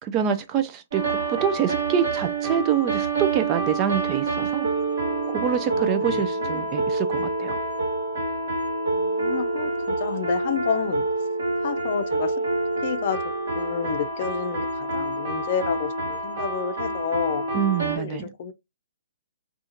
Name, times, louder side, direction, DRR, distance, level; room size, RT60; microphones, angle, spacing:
voice 1, 0.0-4.7 5.3-7.6 17.5-18.3, right 8 dB, 25° right, 0.3 m, -26 dB
sound 1, 0.9-18.0, right 3 dB, 60° right, 1.2 m, -27 dB
voice 2, 5.7-6.7 8.9-11.1 11.6-12.3 12.8-13.2 13.5-17.4 18.0-18.5, left 7 dB, 45° left, 0.5 m, -30 dB
2.4 x 2.4 x 2.7 m
figure-of-eight pair, 130°, 0 cm